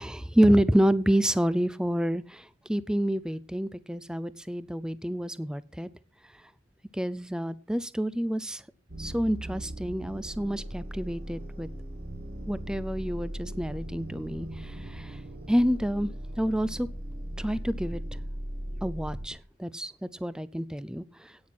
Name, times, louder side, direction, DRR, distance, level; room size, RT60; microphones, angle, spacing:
voice 1, 0.0-5.9 6.9-8.6 9.0-11.7 12.5-15.2 15.5-16.1 16.4-16.9 17.4-18.0 18.8-21.3, equal, 5° right, 16 dB, 0.5 m, -28 dB
sound 1, 8.9-19.3, right 1 dB, 55° right, 2.6 m, -38 dB
9.3 x 8.8 x 6.0 m, 0.39 s
head